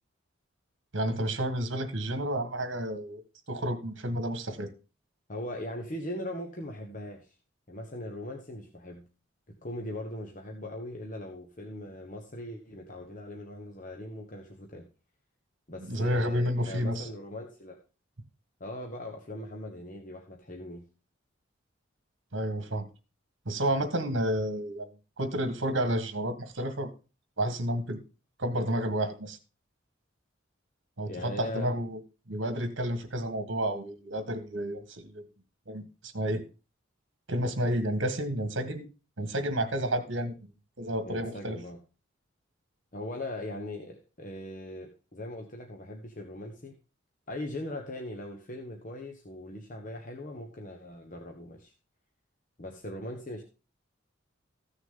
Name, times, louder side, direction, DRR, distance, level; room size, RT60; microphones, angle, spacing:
voice 1, 0.9-3.2 3.5-4.7 15.8-17.1 22.3-22.9 23.5-24.9 25.2-26.9 27.4-28.0 28.4-29.4 31.0-32.0 32.3-35.2 35.7-36.4 37.3-38.8 39.2-40.5 40.8-41.6, right 1 dB, 70° right, 9 dB, 1.7 m, -30 dB
voice 2, 5.3-7.3 7.7-9.0 9.6-14.9 15.7-17.8 18.6-20.8 31.1-31.7 41.0-41.8 42.9-46.8 47.3-51.7 52.6-53.4, left 1 dB, 40° left, 2 dB, 1.2 m, -40 dB
14.5 x 6.4 x 3.8 m, 0.33 s
head